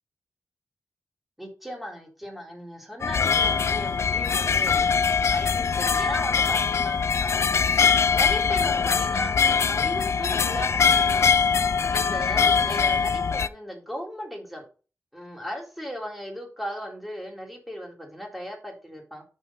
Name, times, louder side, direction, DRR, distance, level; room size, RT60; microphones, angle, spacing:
voice 1, 1.4-4.9 5.3-7.5 8.1-11.3 11.9-14.6 15.1-19.2, equal, ahead, 1 dB, 2.2 m, -36 dB
sound 1, 3.0-13.5, left 6 dB, 55° left, 0.4 m, -22 dB
6.4 x 5.7 x 5.2 m, 0.35 s
wide cardioid pair, 160°, 6 cm